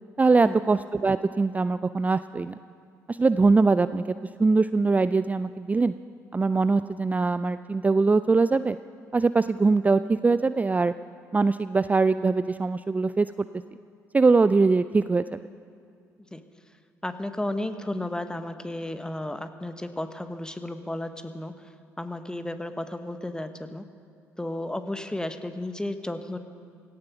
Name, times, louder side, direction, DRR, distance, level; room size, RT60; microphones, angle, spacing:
voice 1, 0.2-2.5 3.1-4.1 4.4-5.9 6.3-8.8 9.1-10.9 11.3-13.3 14.1-15.4, right 3 dB, 20° right, 13 dB, 0.4 m, -22 dB
voice 2, 17.0-21.5 22.0-23.8 24.4-26.4, left 1 dB, 10° left, 9 dB, 1.1 m, -33 dB
17.0 x 14.0 x 5.9 m, 2.5 s
hypercardioid pair, 50°, 8 cm